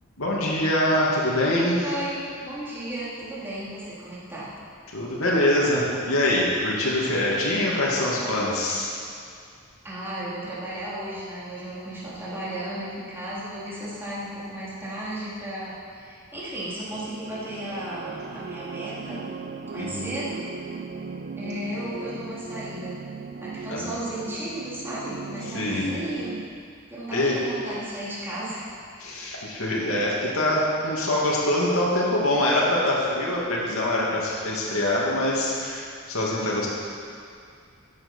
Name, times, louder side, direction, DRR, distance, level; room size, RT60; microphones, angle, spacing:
voice 1, 0.2-1.8 4.9-8.9 19.8-20.1 23.7-24.0 25.5-25.9 27.1-27.4 29.0-36.7, left 1 dB, 90° left, -5 dB, 2.6 m, -24 dB
voice 2, 1.8-4.5 9.8-19.3 19.7-20.4 21.4-23.0 23.4-26.5 26.9-28.6, right 1 dB, 10° right, -10 dB, 3.9 m, -34 dB
sound 1, 16.9-26.5, right 4 dB, 45° right, 0.5 m, -37 dB
15.0 x 9.7 x 5.7 m, 2.4 s
head